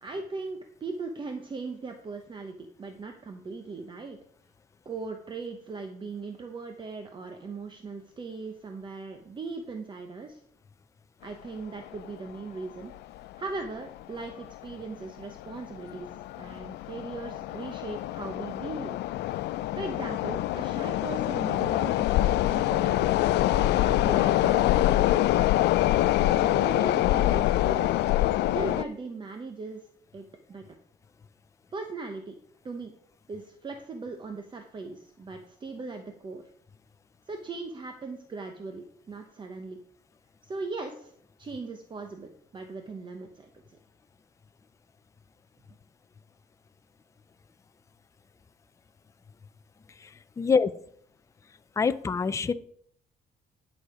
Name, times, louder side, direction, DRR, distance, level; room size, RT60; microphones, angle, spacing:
voice 1, 0.0-4.2 4.8-10.4 11.2-12.9 13.4-19.0 19.8-23.1 23.6-25.2 26.2-29.9 30.1-30.6 31.7-32.4 32.6-32.9 33.3-36.5 37.3-39.8 40.4-41.1 41.4-43.5, right 3 dB, 30° right, 5 dB, 0.9 m, -39 dB
sound 1, 11.9-12.0 12.3-12.4 13.2-13.4 13.7-13.8 14.4-14.7 15.2-28.8, left 15 dB, 85° left, 0.4 m, -25 dB
voice 2, 50.4-50.7 51.8-52.5, left 5 dB, 20° left, 12 dB, 0.4 m, -24 dB
11.0 x 6.4 x 4.9 m, 0.66 s
cardioid pair, 140°, 17 cm